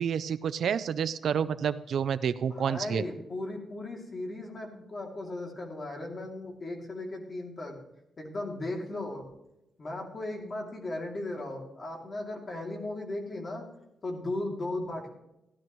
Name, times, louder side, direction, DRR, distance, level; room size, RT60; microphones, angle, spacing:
voice 1, 0.0-3.0, right 7 dB, 60° right, 14 dB, 0.4 m, -29 dB
voice 2, 2.5-7.8 8.2-9.3 9.8-13.6 14.0-15.1, left 2 dB, 30° left, 1 dB, 2.7 m, -36 dB
15.0 x 12.0 x 3.1 m, 0.88 s
wide cardioid pair, 165°, 0 cm